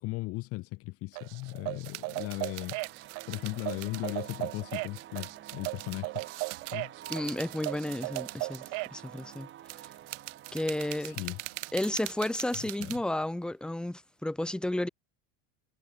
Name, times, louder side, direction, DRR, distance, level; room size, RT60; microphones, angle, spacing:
voice 1, 0.0-2.8 3.3-6.2 6.7-6.9 11.0-11.4 12.8-12.9, left 22 dB, 35° left, 0.7 m, -37 dB
sound 1, 1.1-1.2 1.4-13.0, right 30 dB, 75° right, 1.7 m, -44 dB
sound 2, 1.2-9.0, right 31 dB, 55° right, 2.4 m, -37 dB
sound 3, 1.9-12.9, right 11 dB, 30° right, 7.0 m, -50 dB
voice 2, 7.1-8.6 8.9-9.5 10.5-11.2 11.7-14.9, left 1 dB, ahead, 1.4 m, -32 dB
cardioid pair, 180°, 39 cm